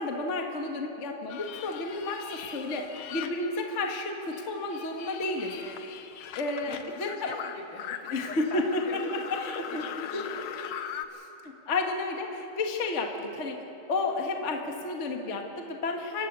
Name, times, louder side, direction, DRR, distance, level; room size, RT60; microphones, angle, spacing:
voice 1, 0.0-5.5 6.3-7.3 8.1-9.0 9.6-10.4 11.1-13.6 13.9-16.3, left 2 dB, 45° left, 2 dB, 0.9 m, -32 dB
sound 1, 1.3-4.0 4.3-11.0, left 9 dB, 85° left, 1.5 m, -41 dB
voice 2, 5.6-6.0 6.6-10.5, left 2 dB, 60° left, 1 dB, 3.6 m, -43 dB
29.0 x 12.5 x 8.2 m, 2.9 s
omnidirectional pair, 4.2 m